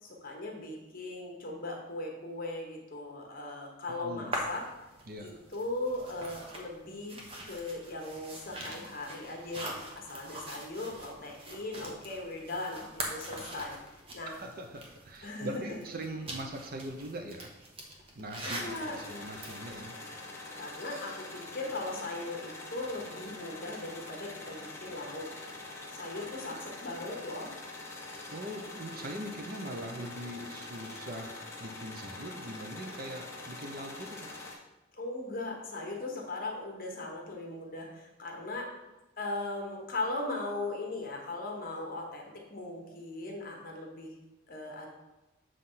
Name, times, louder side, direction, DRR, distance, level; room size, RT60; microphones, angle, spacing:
voice 1, 0.0-4.6 5.2-14.4 15.2-15.8 18.4-19.0 20.5-25.3 25.9-27.5 34.9-38.7 39.2-44.1 44.5-44.9, left 2 dB, 45° left, 0 dB, 1.3 m, -38 dB
sound 1, 4.3-19.9, right 1 dB, 30° right, 1.0 m, -43 dB
voice 2, 5.1-5.4 14.4-17.5 18.1-19.9 28.3-31.3 31.6-34.3, right 1 dB, 45° right, 3 dB, 0.7 m, -41 dB
sound 2, 18.4-34.5, left 2 dB, 15° left, 1.0 m, -44 dB
7.7 x 3.3 x 5.6 m, 1.0 s
head